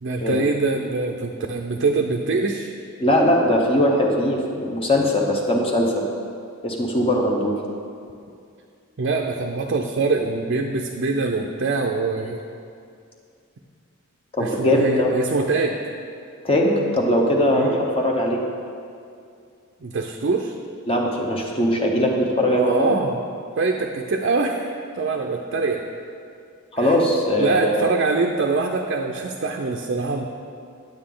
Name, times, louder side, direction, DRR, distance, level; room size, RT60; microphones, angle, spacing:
voice 1, 0.0-2.7 9.0-12.4 14.4-15.8 17.5-17.8 19.8-20.6 22.4-23.1 23.6-25.8 26.8-27.0 27.4-30.2, right 3 dB, 50° right, 3 dB, 0.5 m, -24 dB
voice 2, 3.0-6.1 6.6-7.6 12.3-12.4 14.4-15.1 16.4-18.4 20.9-22.9 26.7-27.8, left 1 dB, 25° left, -1 dB, 0.8 m, -20 dB
9.1 x 8.8 x 3.8 m, 2.4 s
head